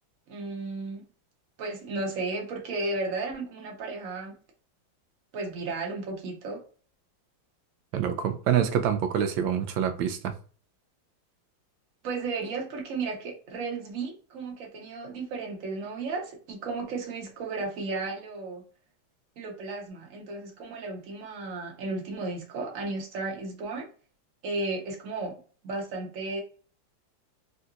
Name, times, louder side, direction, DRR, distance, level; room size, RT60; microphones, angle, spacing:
voice 1, 0.3-1.0 1.6-4.4 5.3-6.6 12.0-18.6 19.4-23.9 24.4-25.4 25.6-26.4, right 3 dB, 55° right, 1.1 m, -34 dB
voice 2, 7.9-10.3, right 8 dB, 80° right, 1.3 m, -26 dB
3.7 x 2.7 x 2.3 m
omnidirectional pair, 2.1 m